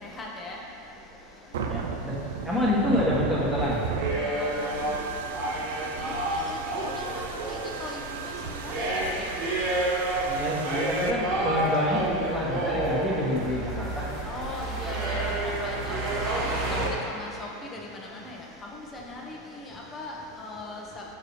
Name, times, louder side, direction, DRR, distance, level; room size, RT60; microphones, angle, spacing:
voice 1, 0.0-0.6 4.2-4.9 6.0-6.1 6.5-7.2 7.5-8.0 8.3-8.4 8.6-8.7 9.1-9.3 14.2-15.2 15.6-16.0 17.2-17.8 18.2-18.4 18.9-19.4 19.7-21.0, left 2 dB, 25° left, -2 dB, 1.0 m, -39 dB
sound 1, 1.5-11.1, right 5 dB, 80° right, 0.4 m, -36 dB
voice 2, 1.7-2.2 2.4-3.8 10.3-14.1, left 1 dB, ahead, -7 dB, 1.5 m, -27 dB
sound 2, 3.6-16.9, right 1 dB, 55° right, 1.3 m, -30 dB
6.8 x 4.7 x 3.2 m, 2.7 s
hypercardioid pair, 105°, 0 cm